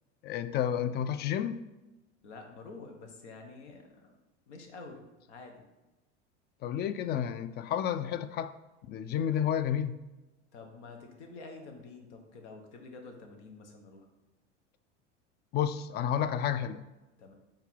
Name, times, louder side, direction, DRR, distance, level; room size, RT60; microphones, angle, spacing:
voice 1, 0.2-1.6 6.6-8.5 8.9-10.0 15.5-16.8, left 9 dB, 30° left, 0.4 m, -31 dB
voice 2, 2.2-4.2 4.5-5.6 10.5-14.1 17.2-17.3, left 3 dB, 75° left, 1.2 m, -48 dB
4.6 x 3.8 x 5.4 m
hypercardioid pair, 85°, 35 cm